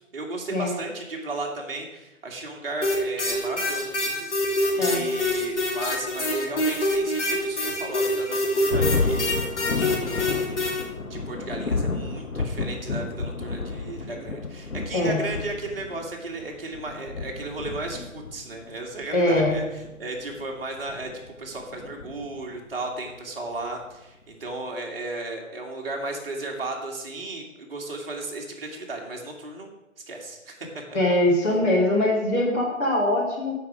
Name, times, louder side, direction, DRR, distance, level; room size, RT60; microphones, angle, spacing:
voice 1, 0.1-9.4 9.7-10.7 11.1-21.1 21.4-29.7 30.1-30.7, right 2 dB, 45° right, 0 dB, 2.3 m, -35 dB
sound 1, 2.8-10.8, left 1 dB, 60° left, 3.6 m, -25 dB
Thunder, 8.7-22.7, left 3 dB, 90° left, 1.1 m, -31 dB
voice 2, 19.1-19.5 30.9-33.5, left 1 dB, 10° left, -7 dB, 1.3 m, -22 dB
14.5 x 6.0 x 4.9 m, 0.97 s
figure-of-eight pair, 150°, 40 cm